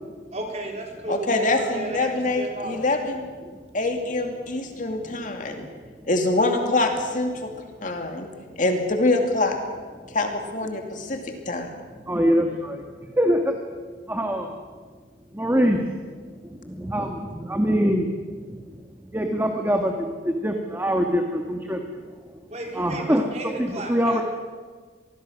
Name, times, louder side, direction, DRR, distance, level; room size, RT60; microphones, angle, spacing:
voice 1, 0.3-2.1 2.4-2.8 22.5-24.2, right 2 dB, 35° right, 1 dB, 4.1 m, -34 dB
voice 2, 1.1-3.3 3.7-5.7 6.0-7.5 7.8-8.3 8.6-9.6 10.1-11.7, left 2 dB, 40° left, 4 dB, 2.6 m, -24 dB
voice 3, 12.1-12.8 13.2-13.4 14.1-14.5 15.4-15.8 16.8-18.1 19.1-20.1 20.4-21.8 22.7-23.3 23.6-24.2, equal, 10° right, 3 dB, 1.6 m, -23 dB
26.0 x 20.5 x 6.4 m, 1.5 s
head